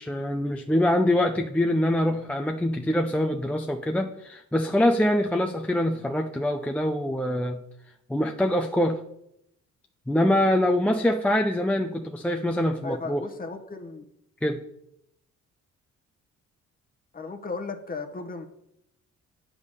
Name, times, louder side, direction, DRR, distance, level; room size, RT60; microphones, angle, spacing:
voice 1, 0.0-7.6 8.1-9.0 10.1-13.2 14.4-14.6, left 1 dB, 5° left, 3 dB, 0.4 m, -24 dB
voice 2, 12.8-14.1 17.1-18.5, left 3 dB, 30° left, 6 dB, 1.0 m, -35 dB
8.0 x 3.7 x 6.6 m, 0.78 s
cardioid pair, 90°, 30 cm